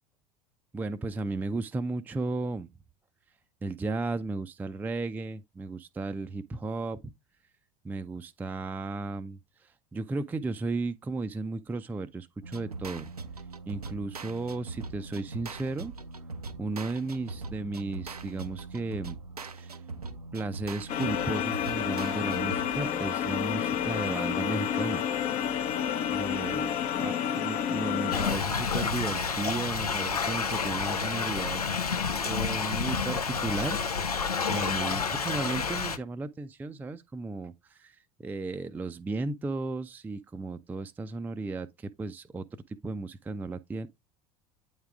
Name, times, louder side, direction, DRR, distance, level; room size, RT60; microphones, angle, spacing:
voice 1, 0.7-2.7 3.6-7.1 7.8-13.1 13.7-15.9 16.6-19.2 19.5-19.8 20.3-25.0 25.3-25.6 26.1-31.6 32.2-33.8 34.1-42.5 42.8-43.9, right 3 dB, 10° right, 0.4 m, -35 dB
sound 1, 12.4-22.9, right 3 dB, 85° right, 0.5 m, -41 dB
sound 2, 20.9-28.3, left 9 dB, 40° left, 0.6 m, -30 dB
Thunder / Rain, 28.1-36.0, left 5 dB, 85° left, 0.5 m, -29 dB
8.6 x 3.5 x 3.5 m
figure-of-eight pair, 70°, 19 cm